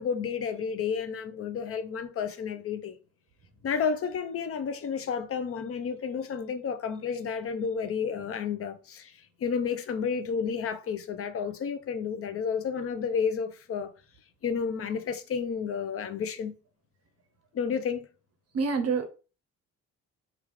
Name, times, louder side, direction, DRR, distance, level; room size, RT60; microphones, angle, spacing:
voice 1, 0.0-3.0 3.6-13.9 14.4-16.5 17.5-18.1, left 6 dB, 50° left, 0.5 m, -31 dB
voice 2, 18.5-19.1, right 5 dB, 55° right, 0.6 m, -26 dB
3.3 x 2.4 x 3.1 m
cardioid pair, 90°, 30 cm